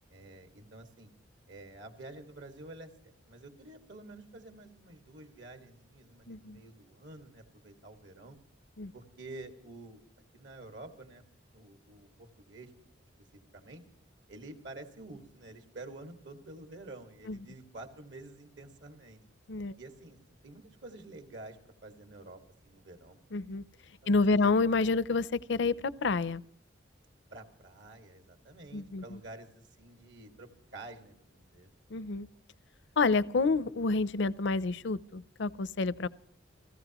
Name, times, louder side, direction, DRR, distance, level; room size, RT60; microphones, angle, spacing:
voice 1, 0.1-1.1 1.5-8.4 8.9-10.0 10.3-11.2 11.5-12.7 13.5-13.8 14.3-19.2 19.8-20.2 20.4-23.2 24.0-24.5 27.3-31.7, right 2 dB, 70° right, 6 dB, 2.0 m, -49 dB
voice 2, 6.3-6.6 8.8-8.9 17.3-17.4 19.5-19.7 23.3-23.6 24.1-26.4 28.7-29.2 31.9-32.3 33.0-36.1, left 3 dB, 65° left, 18 dB, 0.6 m, -29 dB
29.0 x 16.5 x 3.0 m, 0.65 s
head